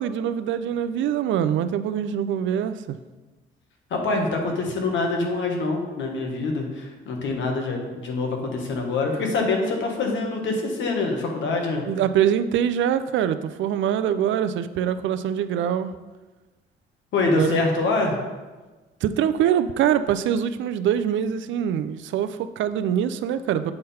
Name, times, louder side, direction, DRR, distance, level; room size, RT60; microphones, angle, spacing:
voice 1, 0.0-3.0 11.8-15.9 17.2-17.6 19.0-23.7, right 9 dB, 75° right, 12 dB, 0.4 m, -24 dB
voice 2, 3.9-11.8 17.1-18.2, left 3 dB, 70° left, 2 dB, 1.3 m, -25 dB
7.7 x 3.8 x 4.2 m, 1.2 s
cardioid pair, 90°, 20 cm